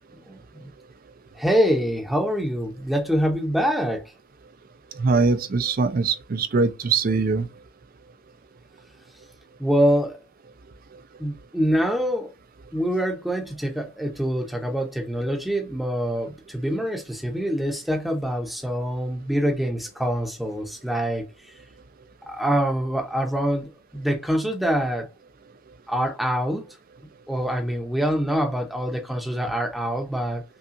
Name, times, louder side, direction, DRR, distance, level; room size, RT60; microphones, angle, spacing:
voice 1, 0.1-0.6 1.4-4.0 9.6-10.2 11.2-12.3 12.7-21.3 22.3-25.1 25.9-26.6 27.3-30.4, equal, ahead, 0.7 m, -25 dB
voice 2, 4.9-7.5, right 4 dB, 40° right, 0.4 m, -22 dB
5.5 x 2.4 x 2.5 m
head